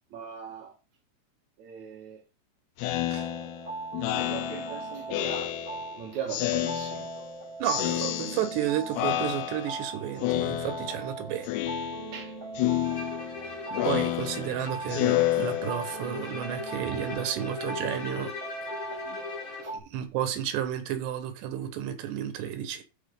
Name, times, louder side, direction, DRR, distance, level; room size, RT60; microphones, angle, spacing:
voice 1, 0.1-0.8 1.6-2.2 4.0-7.1 12.1-12.3 19.6-19.7, right 8 dB, 65° right, 1.9 m, -40 dB
Speech synthesizer, 2.8-5.9 6.3-7.3 7.7-8.7 9.0-9.9 10.2-11.1 11.5-12.3 12.6-16.1, left 15 dB, 90° left, 2.8 m, -30 dB
sound 1, 3.1-19.8, right 3 dB, 15° right, 2.3 m, -40 dB
voice 2, 7.6-11.5 13.8-18.3 18.6-18.8 19.7-22.8, right 10 dB, 85° right, 3.5 m, -32 dB
Bowed string instrument, 12.8-19.8, left 4 dB, 60° left, 4.1 m, -40 dB
13.5 x 4.7 x 3.8 m
omnidirectional pair, 4.8 m